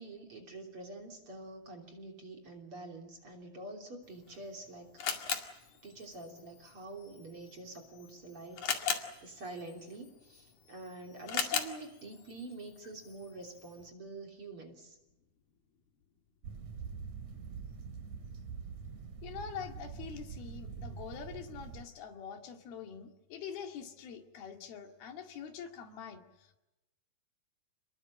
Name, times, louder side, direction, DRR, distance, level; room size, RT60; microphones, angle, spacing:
voice 1, 0.0-4.9 5.8-8.9 9.2-15.0, right 2 dB, 35° right, 2 dB, 3.7 m, -46 dB
Camera, 4.0-13.9, left 7 dB, 55° left, 3.4 m, -40 dB
sound 1, 16.4-21.8, right 6 dB, 55° right, 3.1 m, -44 dB
voice 2, 19.2-26.6, left 7 dB, 80° left, 4 dB, 4.1 m, -45 dB
29.0 x 21.0 x 7.6 m, 0.98 s
omnidirectional pair, 4.3 m